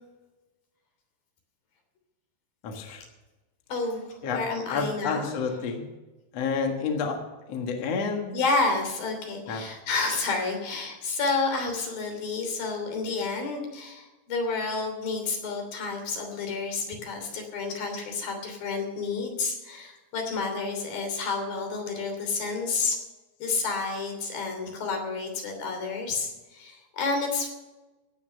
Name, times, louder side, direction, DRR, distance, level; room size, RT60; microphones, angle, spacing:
voice 1, 2.6-3.0 4.2-4.4 4.7-5.8 6.3-7.2 7.5-8.3 9.5-9.6, left 5 dB, 55° left, 3 dB, 2.4 m, -29 dB
voice 2, 3.7-5.3 8.3-23.0 23.4-27.5, left 4 dB, 75° left, 3 dB, 4.8 m, -30 dB
16.5 x 9.8 x 6.7 m, 1.1 s
omnidirectional pair, 4.1 m